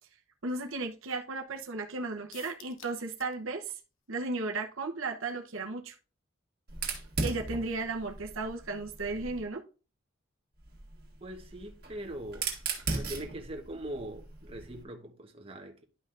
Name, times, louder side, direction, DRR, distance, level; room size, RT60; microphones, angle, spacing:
voice 1, 0.4-3.7 4.1-5.9 7.2-9.6, right 3 dB, 80° right, 0.9 m, -35 dB
sound 1, 2.3-3.4 3.7-3.8 4.1-4.2, left 9 dB, 75° left, 0.9 m, -52 dB
Fire, 6.7-9.4 10.6-14.8, right 3 dB, 50° right, 1.7 m, -38 dB
voice 2, 11.2-12.5 12.9-15.8, right 1 dB, 30° right, 1.1 m, -41 dB
11.5 x 5.3 x 2.5 m
head